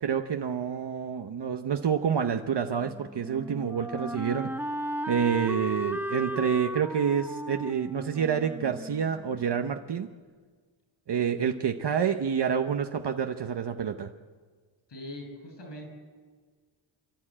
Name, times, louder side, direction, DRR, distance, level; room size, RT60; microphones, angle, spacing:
voice 1, 0.0-4.5 5.1-10.1 11.1-14.1, right 7 dB, 55° right, 5 dB, 0.9 m, -28 dB
Wind instrument woodwind instrument, 2.8-9.6, right 1 dB, 5° right, 0.7 m, -36 dB
voice 2, 14.9-15.9, left 1 dB, 60° left, 4 dB, 6.6 m, -41 dB
29.0 x 12.5 x 8.7 m, 1.5 s
wide cardioid pair, 160°, 49 cm